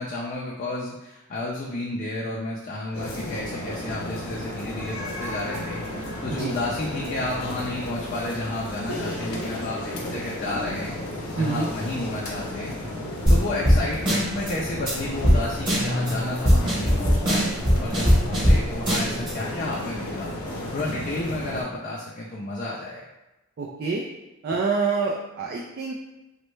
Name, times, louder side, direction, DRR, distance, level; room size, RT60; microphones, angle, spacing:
voice 1, 0.0-10.9 11.3-12.7 13.3-17.5 17.8-23.1, left 2 dB, 40° left, -4 dB, 0.4 m, -32 dB
sound 1, 2.9-21.6, left 1 dB, 90° left, 0.6 m, -33 dB
voice 2, 11.4-11.7 23.6-24.0 24.4-25.9, right 4 dB, 50° right, -1 dB, 0.3 m, -26 dB
sound 2, 13.3-13.4 13.6-13.8 14.1-14.5 14.9-15.0 15.2-15.4 15.7-16.1 16.4-18.6 18.9-19.3, equal, 20° right, 0.9 m, -19 dB
sound 3, 13.9-19.4, left 1 dB, 75° right, 0.9 m, -35 dB
3.1 x 2.1 x 3.1 m, 0.99 s
head